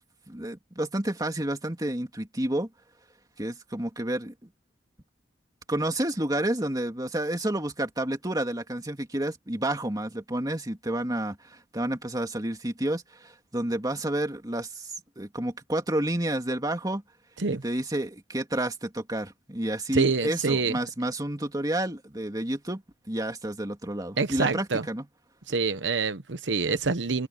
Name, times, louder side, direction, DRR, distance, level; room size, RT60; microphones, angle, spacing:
voice 1, 0.3-2.7 3.4-4.5 5.7-14.9 15.2-17.0 17.5-22.8 23.1-25.1, right 1 dB, 20° right, 2.6 m, -30 dB
voice 2, 19.9-20.8 24.2-24.8 25.5-27.3, right 4 dB, 80° right, 1.0 m, -26 dB
head